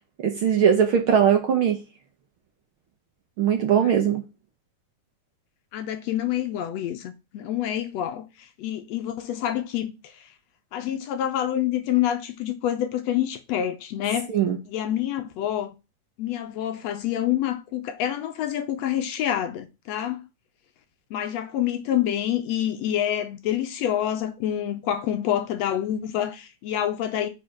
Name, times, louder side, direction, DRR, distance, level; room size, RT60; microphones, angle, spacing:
voice 1, 0.2-1.8 3.4-4.2 14.3-14.6, right 8 dB, 60° right, 1.4 m, -20 dB
voice 2, 5.7-9.9 10.7-14.3 14.7-15.7 16.2-20.3 21.1-27.3, left 11 dB, 75° left, 1.7 m, -27 dB
5.0 x 4.9 x 5.8 m
omnidirectional pair, 3.3 m